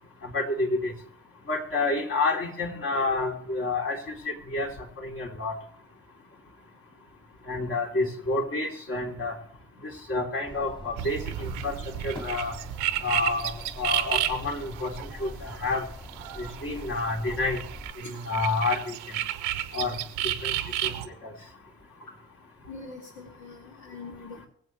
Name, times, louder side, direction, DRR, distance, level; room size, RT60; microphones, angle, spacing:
voice 1, 0.2-0.9 1.5-4.7 5.0-5.5 7.5-9.3 10.1-11.8 12.0-12.6 13.0-15.8 16.4-17.6 18.0-19.0 19.7-19.9 20.4-20.5 20.8-20.9 21.2-21.3, left 3 dB, 45° left, 0 dB, 3.7 m, -29 dB
sound 1, 10.4-17.9, left 1 dB, 15° left, 2.4 m, -43 dB
sound 2, 11.0-17.0 17.3-21.1, right 13 dB, 85° right, 1.0 m, -32 dB
voice 2, 22.7-24.5, left 3 dB, 70° left, -1 dB, 2.6 m, -43 dB
24.0 x 8.0 x 3.3 m, 0.65 s
hypercardioid pair, 45°, 30 cm